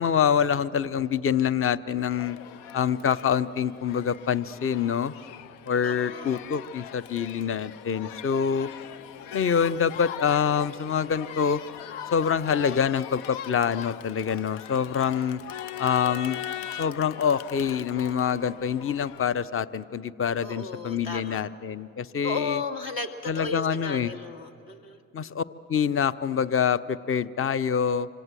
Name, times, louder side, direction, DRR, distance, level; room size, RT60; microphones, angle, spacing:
voice 1, 0.0-2.4 2.7-5.1 5.7-8.7 9.3-11.6 12.1-15.4 15.8-16.4 16.8-22.6 23.3-24.1 25.1-28.1, left 7 dB, 30° left, 16 dB, 0.8 m, -26 dB
Crowd, 2.1-19.2, left 10 dB, 75° left, 0.7 m, -40 dB
voice 2, 5.8-6.4 12.5-12.8 20.4-21.5 22.2-25.0, left 4 dB, 55° left, 5 dB, 2.4 m, -35 dB
26.5 x 25.5 x 7.6 m, 2.5 s
hypercardioid pair, 50°, 43 cm